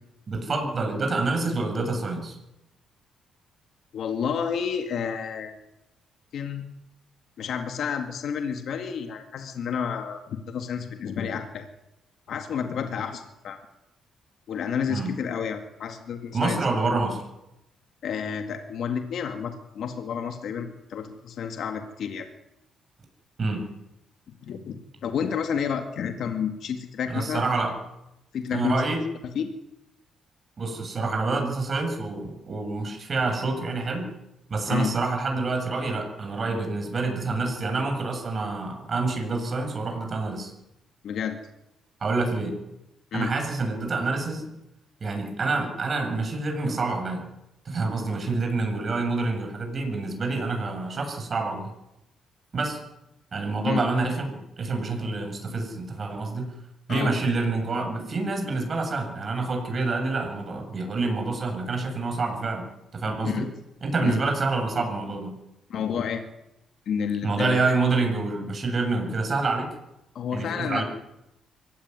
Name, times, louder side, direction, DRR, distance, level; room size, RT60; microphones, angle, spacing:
voice 1, 0.3-2.4 14.9-15.1 16.3-17.2 23.4-23.6 27.1-27.7 28.5-29.0 30.6-34.1 34.5-40.5 42.0-42.6 43.1-44.5 45.0-47.2 47.6-51.7 52.5-52.8 53.3-56.5 56.9-62.7 62.9-63.5 63.8-65.4 67.2-69.7 70.3-70.8, right 3 dB, 40° right, 4 dB, 7.9 m, -27 dB
voice 2, 3.9-5.6 6.3-6.6 7.4-11.7 12.3-13.6 14.5-16.6 18.0-22.3 24.3-27.4 28.3-28.8 29.3-29.5 34.7-34.9 41.0-41.4 43.1-43.3 53.7-53.8 56.9-57.1 63.2-63.5 64.0-64.2 65.7-66.2 66.9-67.6 70.1-70.8, left 7 dB, 65° left, 6 dB, 2.1 m, -30 dB
23.5 x 17.5 x 9.6 m, 0.89 s
cardioid pair, 90°, 0 cm